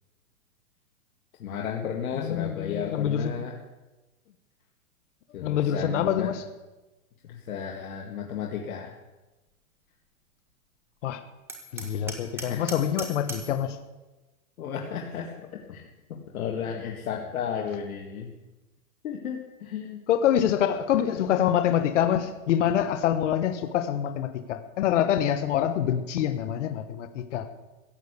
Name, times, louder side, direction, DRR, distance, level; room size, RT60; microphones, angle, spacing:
voice 1, 1.4-3.6 5.3-6.3 7.2-9.0 12.4-12.6 14.6-18.3 19.0-20.0, left 7 dB, 70° left, 0 dB, 2.2 m, -34 dB
voice 2, 2.2-3.4 5.4-6.4 11.0-11.2 11.7-13.8 20.1-27.5, left 10 dB, 55° left, 8 dB, 1.2 m, -25 dB
Hammer, 11.5-13.6, right 2 dB, 5° right, 1.3 m, -39 dB
15.5 x 8.7 x 8.3 m, 1.1 s
hypercardioid pair, 160°, 44 cm